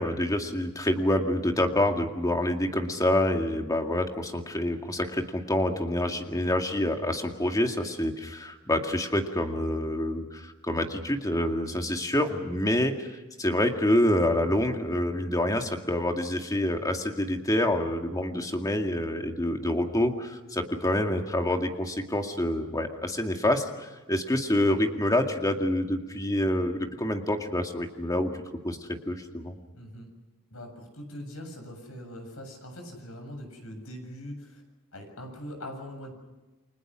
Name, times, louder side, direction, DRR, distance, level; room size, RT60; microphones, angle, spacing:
voice 1, 0.0-13.1 13.4-28.3 28.6-29.5, left 1 dB, 15° left, 4 dB, 2.2 m, -27 dB
voice 2, 29.7-30.1 30.5-34.6 34.9-36.1, equal, 70° left, 5 dB, 7.2 m, -42 dB
30.0 x 24.0 x 6.3 m, 1.1 s
head